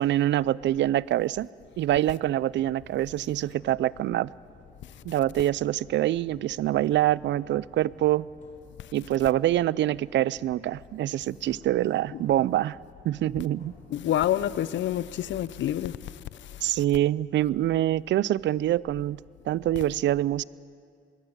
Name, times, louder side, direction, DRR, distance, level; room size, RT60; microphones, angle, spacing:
voice 1, 0.0-1.5 1.8-4.3 5.0-8.3 8.9-12.8 13.0-13.7 16.6-19.2 19.5-20.4, right 13 dB, 65° right, 0.5 m, -25 dB
sound 1, 2.2-14.9, left 3 dB, 40° left, 4.8 m, -55 dB
voice 2, 13.9-16.0, left 12 dB, 70° left, 0.7 m, -27 dB
22.5 x 18.0 x 7.4 m
cardioid pair, 90°, 20 cm